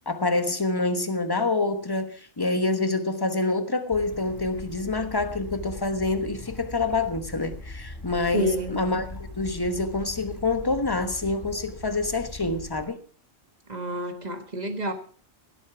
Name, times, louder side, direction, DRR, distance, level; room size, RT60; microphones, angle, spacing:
voice 1, 0.1-13.0, left 3 dB, 20° left, 1.1 m, -27 dB
Bird / Stream, 3.9-12.8, left 2 dB, 40° left, 3.7 m, -41 dB
voice 2, 8.3-8.8 13.7-14.9, left 1 dB, 35° right, 1.5 m, -29 dB
16.0 x 8.3 x 5.9 m
omnidirectional pair, 1.3 m